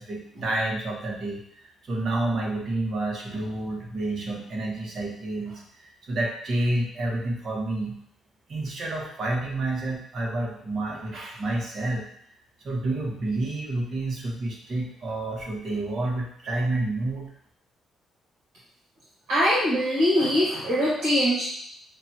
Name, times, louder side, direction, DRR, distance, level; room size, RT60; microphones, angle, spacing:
voice 1, 0.0-8.0 8.5-12.1 12.6-17.3, right 2 dB, 55° right, -2 dB, 1.3 m, -29 dB
voice 2, 19.3-21.4, equal, 80° right, -9 dB, 1.6 m, -22 dB
5.9 x 2.4 x 2.9 m, 0.64 s
cardioid pair, 90°, 0 cm